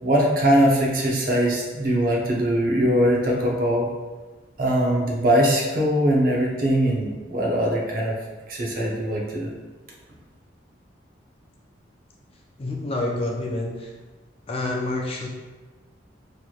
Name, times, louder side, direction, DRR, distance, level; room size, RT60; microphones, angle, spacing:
voice 1, 0.0-3.9 4.6-8.1 8.5-9.5, equal, 45° right, -2 dB, 0.7 m, -21 dB
voice 2, 12.6-13.9 14.5-15.3, left 2 dB, 30° left, 0 dB, 0.4 m, -28 dB
4.4 x 3.0 x 2.4 m, 1.3 s
head